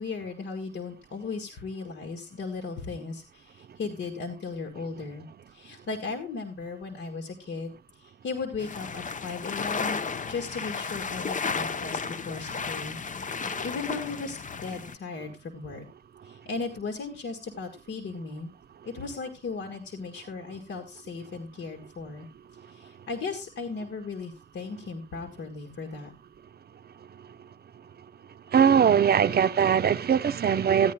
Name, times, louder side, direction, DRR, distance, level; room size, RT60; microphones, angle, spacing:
voice 1, 0.0-10.0 10.3-15.9 16.2-18.5 18.8-22.3 22.7-26.1, left 4 dB, 80° left, 1.8 m, -36 dB
sound 1, 8.6-15.0, left 5 dB, 40° left, 0.8 m, -33 dB
voice 2, 28.5-30.9, right 8 dB, 55° right, 0.6 m, -21 dB
16.5 x 10.0 x 2.2 m
cardioid pair, 105°, 19 cm